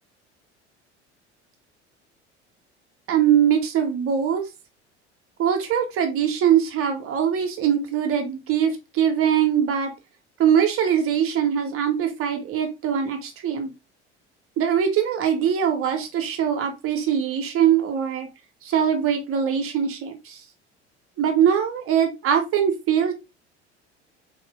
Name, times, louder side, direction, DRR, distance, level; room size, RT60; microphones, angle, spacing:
voice 1, 3.1-4.4 5.4-9.9 10.4-13.7 14.6-18.3 18.6-20.4 21.2-23.1, right 8 dB, 40° right, 5 dB, 0.9 m, -22 dB
3.7 x 2.6 x 3.3 m, 0.25 s
figure-of-eight pair, 65°, 35 cm